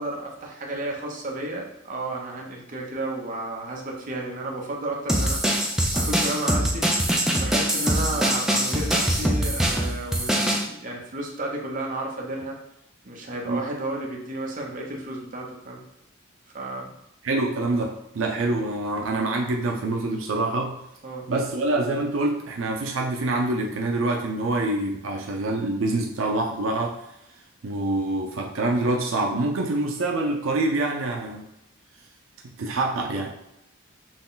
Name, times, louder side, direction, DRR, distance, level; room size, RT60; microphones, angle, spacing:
voice 1, 0.0-5.4 5.9-6.9 7.4-12.6 13.0-15.8 16.5-16.9 21.0-21.3, right 2 dB, 40° right, -1 dB, 0.9 m, -32 dB
sound 1, 5.1-10.6, right 1 dB, 5° right, 0.5 m, -23 dB
voice 2, 17.2-20.8 21.3-27.0 27.6-31.5 32.4-33.3, right 2 dB, 80° right, 1 dB, 0.5 m, -26 dB
6.1 x 2.3 x 3.8 m, 0.86 s
head